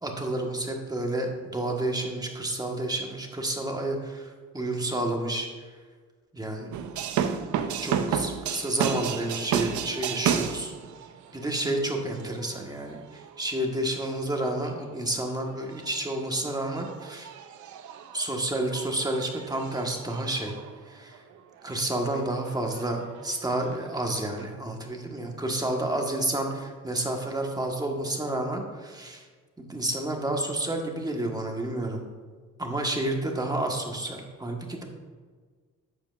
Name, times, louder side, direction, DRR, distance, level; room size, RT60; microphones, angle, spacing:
voice 1, 0.0-5.5 6.3-6.7 7.8-10.7 11.3-17.3 18.1-20.5 20.9-21.2 21.6-26.5 26.8-29.2 29.6-32.0 32.6-34.8, right 1 dB, 15° right, 2 dB, 1.4 m, -30 dB
sound 1, 6.7-13.5 14.3-14.8 15.1-15.4 15.6-21.7 22.0-24.5, right 8 dB, 75° right, 0.7 m, -33 dB
11.0 x 7.2 x 2.5 m, 1.5 s
cardioid pair, 90°, 30 cm